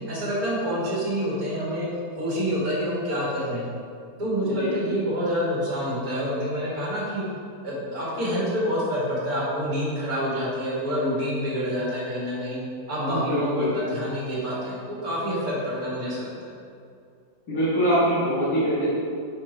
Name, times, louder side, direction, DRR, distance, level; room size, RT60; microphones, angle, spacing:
voice 1, 0.1-1.9 2.2-3.6 4.2-7.2 7.6-12.6 12.9-16.5, equal, 70° right, -6 dB, 2.4 m, -27 dB
voice 2, 13.1-13.8 17.5-18.9, right 1 dB, 80° left, -12 dB, 2.3 m, -23 dB
8.7 x 4.3 x 4.4 m, 2.4 s
omnidirectional pair, 1.6 m